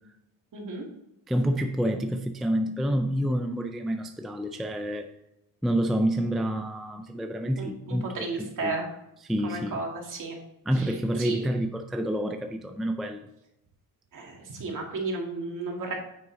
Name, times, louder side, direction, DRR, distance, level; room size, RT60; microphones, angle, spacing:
voice 1, 0.5-0.9 7.6-8.9 9.4-10.4 10.7-11.4 14.1-15.9, right 3 dB, 50° right, 2.3 m, -34 dB
voice 2, 1.3-5.1 5.6-8.8 9.2-9.8 10.7-13.3, equal, ahead, 0.3 m, -28 dB
9.6 x 5.7 x 3.9 m
cardioid pair, 170°, 39 cm